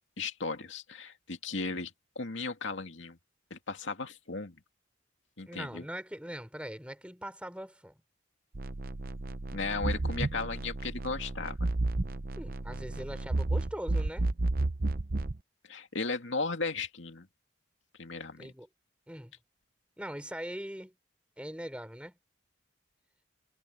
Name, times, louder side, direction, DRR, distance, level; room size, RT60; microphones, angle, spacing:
voice 1, 0.2-3.2 3.5-4.6 5.4-5.8 9.5-11.6 15.7-17.3 18.0-18.5, left 4 dB, 75° left, 2.3 m, -36 dB
voice 2, 5.5-8.0 12.4-14.3 18.4-18.7 19.1-19.3 20.0-20.9 21.4-22.2, equal, 5° right, 4.3 m, -41 dB
sound 1, 8.5-15.4, right 2 dB, 50° right, 0.8 m, -32 dB
head